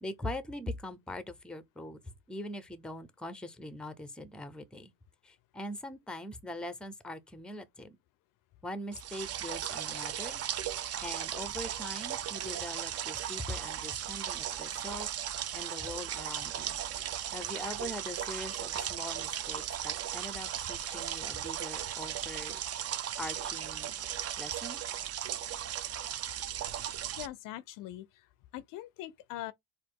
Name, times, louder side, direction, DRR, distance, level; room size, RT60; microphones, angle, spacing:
voice 1, 0.0-2.0 2.3-4.9 5.2-8.0 8.6-10.4 11.0-15.1 15.5-16.8 17.3-22.6 23.2-23.9 24.4-24.8, left 1 dB, ahead, 0.6 m, -42 dB
sound 1, 8.9-27.3, right 10 dB, 40° right, 0.6 m, -37 dB
voice 2, 27.2-28.3 28.5-29.5, left 14 dB, 60° left, 0.5 m, -42 dB
4.2 x 2.5 x 4.6 m
supercardioid pair, 110°, 38 cm